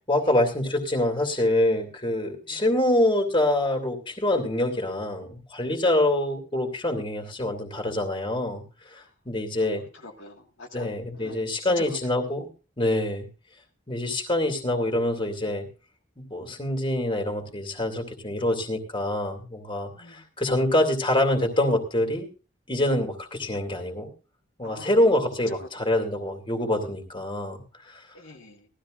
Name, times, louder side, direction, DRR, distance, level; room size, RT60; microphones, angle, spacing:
voice 1, 0.1-8.6 8.9-9.8 10.7-12.5 12.8-13.3 13.9-15.7 16.2-22.3 22.7-24.1 24.6-28.0, left 1 dB, 25° left, 3 dB, 2.4 m, -25 dB
voice 2, 10.0-10.9 11.2-11.4 11.8-11.9 19.9-20.2 24.6-24.9 25.5-25.7 28.1-28.7, left 2 dB, 80° left, 1 dB, 1.8 m, -44 dB
18.0 x 13.0 x 2.5 m, 0.31 s
head